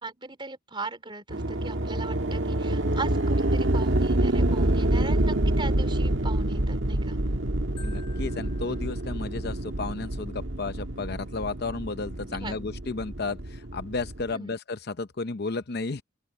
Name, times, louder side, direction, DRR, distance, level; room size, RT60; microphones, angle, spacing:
voice 1, 0.0-7.2 12.3-12.5 14.3-14.5, right 3 dB, 25° right, 3.5 m, -39 dB
sound 1, 1.3-14.3, right 1 dB, 65° right, 1.7 m, -27 dB
voice 2, 7.8-16.0, left 3 dB, 55° left, 0.7 m, -33 dB
Marimba xylophone, 7.8-9.8, left 6 dB, 25° left, 6.3 m, -53 dB
open air
head